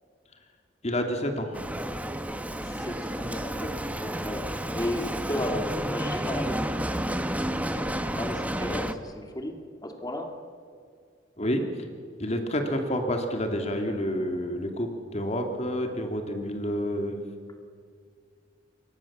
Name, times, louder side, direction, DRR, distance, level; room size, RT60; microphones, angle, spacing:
voice 1, 0.8-1.5 6.1-6.2 11.4-11.9 12.2-17.2, equal, 40° left, 4 dB, 2.5 m, -29 dB
Bicycle, 1.5-8.9, right 1 dB, 10° right, 1.3 m, -31 dB
voice 2, 2.5-4.5 4.7-7.2 7.7-10.3, left 1 dB, 20° left, 3 dB, 2.6 m, -35 dB
29.5 x 24.0 x 7.3 m, 2.2 s
head